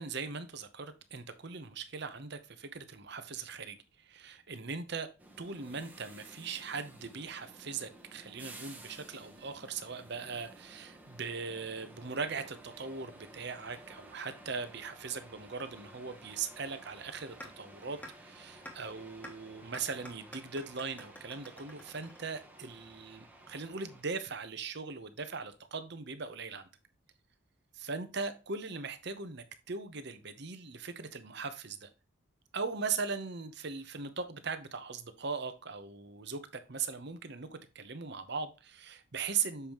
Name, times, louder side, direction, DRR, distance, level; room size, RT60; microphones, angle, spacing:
voice 1, 0.0-3.8 4.0-5.1 5.4-26.6 27.8-31.9 32.5-36.4 36.7-39.7, right 5 dB, 50° right, 0.9 m, -39 dB
sound 1, 5.2-24.0, right 1 dB, 10° right, 1.1 m, -54 dB
sound 2, 17.4-17.5 18.0-18.1 18.7-18.8 19.2-19.3 19.7-22.7, equal, 5° left, 1.4 m, -47 dB
7.0 x 5.4 x 3.0 m
head